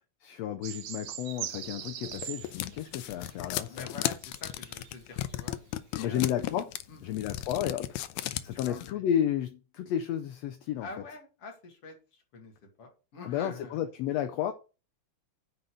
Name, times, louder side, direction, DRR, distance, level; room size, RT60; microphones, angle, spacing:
voice 1, 0.2-3.8 6.0-6.7 7.0-8.0 8.4-10.9 13.3-14.5, left 10 dB, 75° left, 1.7 m, -32 dB
sound 1, 0.6-4.9 5.4-5.5, right 12 dB, 70° right, 1.8 m, -42 dB
sound 2, 1.6-8.9, left 14 dB, 90° left, 2.0 m, -35 dB
voice 2, 3.7-5.6 5.9-6.4 6.9-7.2 8.5-9.0 10.8-13.9, left 3 dB, 55° left, 3.2 m, -46 dB
9.5 x 4.2 x 6.4 m
omnidirectional pair, 3.3 m